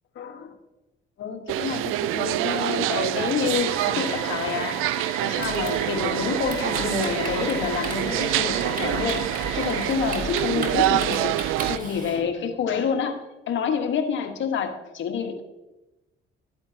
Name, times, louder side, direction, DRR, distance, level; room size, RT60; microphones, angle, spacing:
voice 1, 0.1-0.6 1.2-4.8 5.2-9.3 9.5-11.3 11.7-15.4, left 6 dB, 65° left, 4 dB, 1.5 m, -28 dB
sound 1, 1.5-11.8, right 14 dB, 80° right, 0.4 m, -26 dB
sound 2, 3.5-9.9, left 1 dB, 20° left, 2.3 m, -37 dB
Typing, 5.4-12.2, right 3 dB, 40° right, 1.9 m, -36 dB
13.0 x 8.8 x 2.8 m, 1.0 s
supercardioid pair, 75°, 21 cm